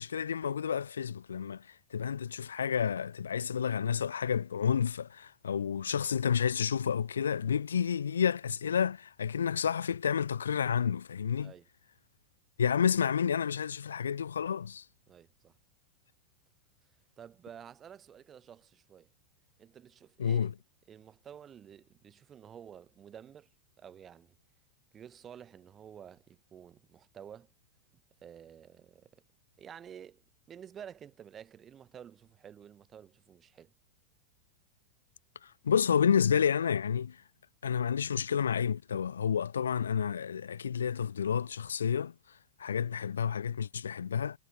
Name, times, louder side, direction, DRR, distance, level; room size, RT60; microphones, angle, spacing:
voice 1, 0.0-11.5 12.6-14.8 20.2-20.5 35.4-37.2 37.6-42.1 42.6-44.4, left 7 dB, 70° left, 0.6 m, -30 dB
voice 2, 15.1-15.5 17.2-19.1 19.6-20.5 20.9-23.5 23.8-24.3 24.9-27.5 28.2-29.2 29.6-30.2 30.5-33.7, right 8 dB, 25° right, 6.8 m, -51 dB
figure-of-eight pair, 90°, 0 cm